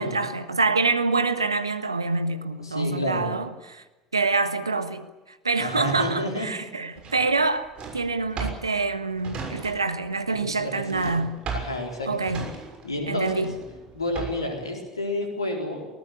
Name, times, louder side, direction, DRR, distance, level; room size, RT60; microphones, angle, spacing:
voice 1, 0.0-3.8 4.1-5.1 5.4-11.4 12.1-12.5 13.1-13.5, right 3 dB, 90° right, 1.5 m, -26 dB
voice 2, 2.6-3.3 5.6-6.5 10.3-11.2 11.5-12.3 12.8-13.5 13.9-15.9, left 1 dB, 90° left, 4.4 m, -30 dB
Drawer open or close, 7.0-10.1 10.3-14.6, right 5 dB, 45° right, 6.5 m, -37 dB
23.5 x 19.0 x 8.5 m
figure-of-eight pair, 65°, 2 cm